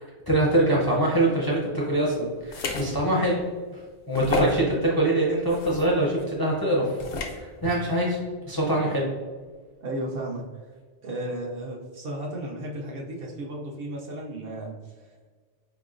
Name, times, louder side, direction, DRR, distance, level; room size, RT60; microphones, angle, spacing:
voice 1, 0.0-3.4 4.1-7.0 7.3-8.2 8.5-9.1, right 1 dB, 25° left, -4 dB, 0.5 m, -24 dB
sound 1, 2.5-2.9 3.4-3.5 4.1-4.6 5.5-5.8 7.0-7.4, left 3 dB, 75° left, 0.8 m, -30 dB
voice 2, 9.8-10.4 11.0-14.8, right 1 dB, 60° right, -1 dB, 0.7 m, -34 dB
4.6 x 2.9 x 2.4 m, 1.5 s
omnidirectional pair, 1.2 m